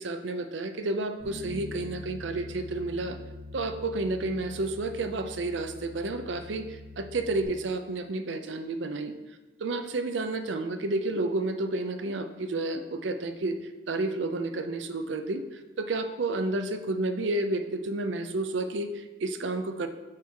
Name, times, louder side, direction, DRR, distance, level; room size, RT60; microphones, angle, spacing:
voice 1, 0.0-3.2 3.5-9.2 9.6-13.6 13.9-19.9, right 2 dB, 80° right, 8 dB, 0.6 m, -31 dB
Bass guitar, 1.2-7.4, left 2 dB, 60° right, 2.2 m, -44 dB
7.9 x 4.7 x 3.5 m, 1.2 s
head